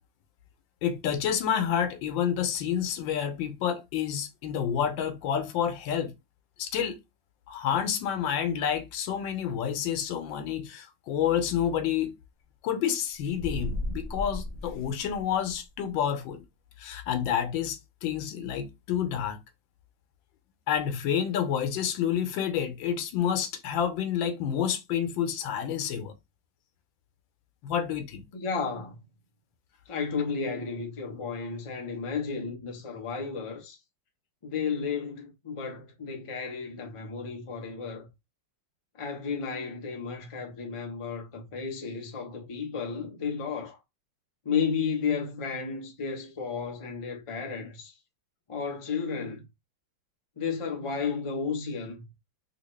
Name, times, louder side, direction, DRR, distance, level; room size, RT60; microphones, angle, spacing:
voice 1, 0.8-6.1 6.6-7.0 7.5-12.1 12.6-16.4 16.8-19.4 20.7-26.1 27.6-28.2, left 9 dB, 85° left, 1.4 m, -29 dB
sound 1, 13.2-15.7, left 1 dB, 55° right, 0.9 m, -35 dB
voice 2, 28.3-29.0 29.9-33.8 34.4-38.1 39.0-43.8 44.4-47.9 48.5-49.4 50.4-52.1, left 5 dB, 40° left, 0.4 m, -33 dB
3.4 x 2.8 x 3.1 m
omnidirectional pair, 2.0 m